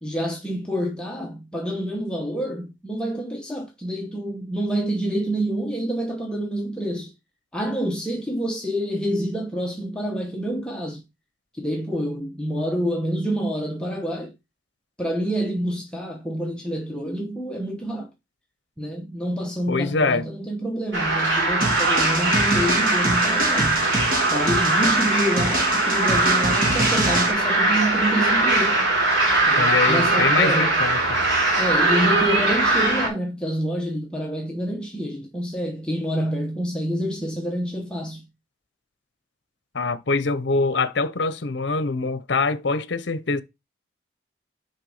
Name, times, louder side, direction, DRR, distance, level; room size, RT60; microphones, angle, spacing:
voice 1, 0.0-7.1 7.5-11.0 11.5-14.3 15.0-18.1 18.8-23.9 24.3-28.8 29.5-30.8 31.6-38.3, equal, 5° left, 1.0 m, -27 dB
voice 2, 19.7-20.3 29.6-31.2 39.7-43.4, left 4 dB, 70° left, 0.7 m, -24 dB
sound 1, 20.9-33.1, right 2 dB, 90° right, 3.6 m, -21 dB
sound 2, 21.6-27.3, right 2 dB, 45° right, 1.7 m, -27 dB
6.7 x 4.6 x 4.8 m
head